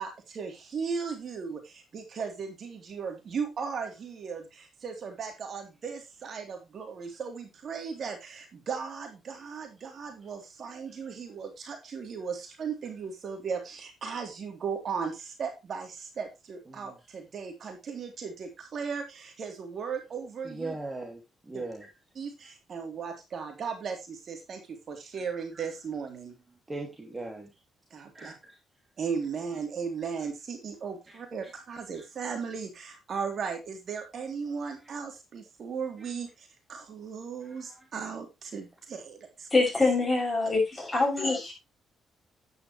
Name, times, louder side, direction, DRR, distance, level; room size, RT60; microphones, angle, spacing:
voice 1, 0.0-20.8 21.5-21.6 22.1-26.3 27.9-28.3 29.0-39.5, right 6 dB, 55° right, 5 dB, 3.2 m, -36 dB
voice 2, 20.4-21.2 21.5-21.9 22.4-22.5 25.5-25.6 26.7-27.5 28.1-28.6 31.1-31.2 31.9-32.0 34.6-34.9 36.0-36.1 37.4-37.8, right 2 dB, 20° right, 1 dB, 2.9 m, -40 dB
voice 3, 39.5-41.5, left 3 dB, 15° left, 1 dB, 6.9 m, -25 dB
10.5 x 9.8 x 3.1 m, 0.23 s
cardioid pair, 90°, 0 cm